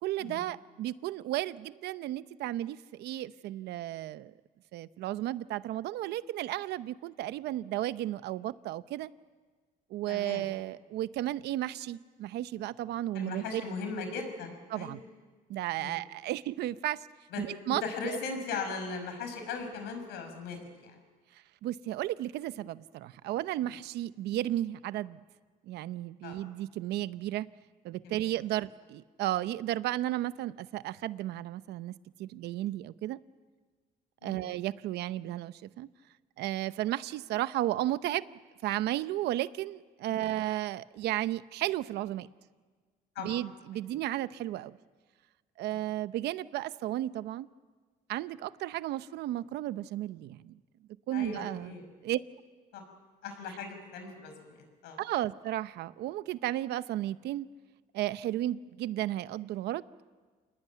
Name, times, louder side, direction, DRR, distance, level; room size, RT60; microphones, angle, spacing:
voice 1, 0.0-4.3 4.7-9.1 9.9-13.6 14.7-15.0 15.5-17.1 17.4-18.2 21.6-25.2 25.7-27.5 27.8-33.2 34.2-35.9 36.4-42.3 43.2-44.8 45.6-47.5 48.1-50.6 51.1-51.7 52.0-52.2 55.0-57.5 57.9-59.8, right 14 dB, 80° right, 14 dB, 0.9 m, -34 dB
voice 2, 10.1-10.4 13.1-15.0 15.8-16.0 17.3-21.0 26.2-26.4 28.0-28.3 34.2-34.4 40.1-40.3 43.2-43.3 51.1-51.8 52.7-52.8 53.2-55.0, left 4 dB, 85° left, 6 dB, 5.8 m, -38 dB
28.5 x 20.0 x 9.5 m, 1.4 s
cardioid pair, 110°, 17 cm